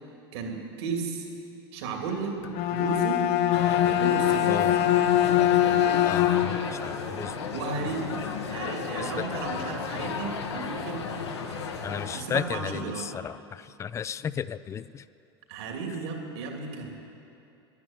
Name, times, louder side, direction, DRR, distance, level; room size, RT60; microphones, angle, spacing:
voice 1, 0.3-1.3 1.7-2.4 2.7-3.2 4.0-4.6 7.5-8.2 8.5-11.0 12.1-13.1 15.5-16.9, right 4 dB, 70° right, 1 dB, 2.9 m, -34 dB
Bowed string instrument, 2.4-6.7, left 12 dB, 50° left, 0.7 m, -23 dB
sound 1, 3.5-12.2, left 5 dB, 85° left, 1.4 m, -34 dB
voice 2, 6.0-7.3 9.0-9.1 11.8-15.0, left 8 dB, 20° left, 17 dB, 0.4 m, -34 dB
11.0 x 10.5 x 9.9 m, 2.7 s
hypercardioid pair, 105°, 14 cm